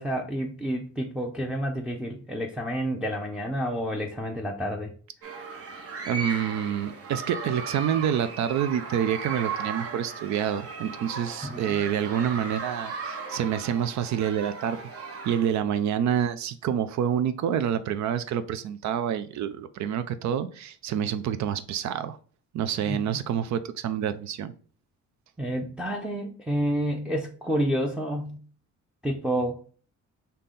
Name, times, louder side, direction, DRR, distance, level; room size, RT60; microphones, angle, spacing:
voice 1, 0.0-4.9 11.4-11.8 22.9-23.0 25.4-28.4 29.0-29.6, equal, 5° right, 0.5 m, -29 dB
sound 1, 5.2-15.7, right 5 dB, 50° right, 0.9 m, -36 dB
voice 2, 6.1-14.8 15.2-22.2 22.5-24.5, right 9 dB, 70° right, 0.4 m, -27 dB
3.8 x 2.8 x 3.7 m
cardioid pair, 90°, 30 cm